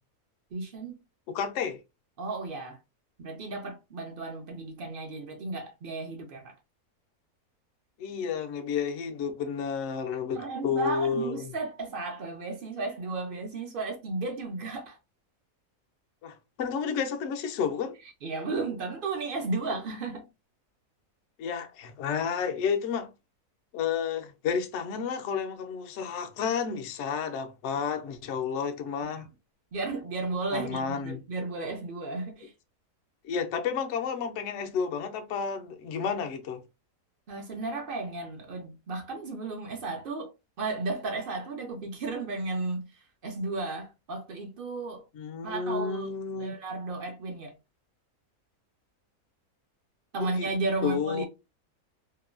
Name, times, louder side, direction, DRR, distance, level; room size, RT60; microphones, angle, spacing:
voice 1, 0.5-1.0 2.2-2.8 3.2-6.5 10.3-15.0 18.2-20.3 29.0-29.1 29.7-32.5 37.3-40.3 40.6-45.0 45.4-46.1 46.4-47.5 50.1-51.3, right 3 dB, 60° right, 0.5 m, -34 dB
voice 2, 1.3-1.8 8.0-11.5 16.2-18.0 21.4-23.1 23.7-29.3 30.5-31.2 33.2-36.6 45.1-46.5 50.2-50.5 50.8-51.3, left 6 dB, 70° left, 0.7 m, -31 dB
3.0 x 2.2 x 2.4 m
omnidirectional pair, 1.6 m